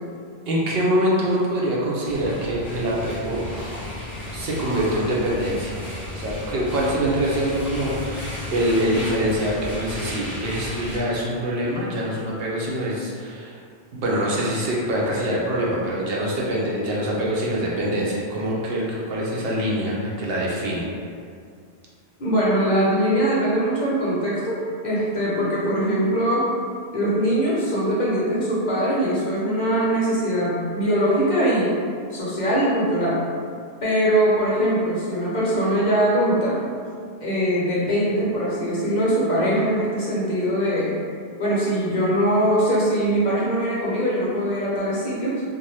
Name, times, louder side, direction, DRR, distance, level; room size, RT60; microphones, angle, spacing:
voice 1, 0.5-3.4 4.3-5.8 6.1-13.6 13.9-20.9, equal, 70° right, -4 dB, 0.8 m, -24 dB
sound 1, 2.0-11.0, left 1 dB, ahead, 0.6 m, -33 dB
voice 2, 22.2-26.5 26.9-31.8 32.1-33.2 33.8-36.6 37.2-40.9 41.4-45.4, equal, 50° left, -8 dB, 0.8 m, -22 dB
2.6 x 2.2 x 3.1 m, 2.2 s
omnidirectional pair, 1.0 m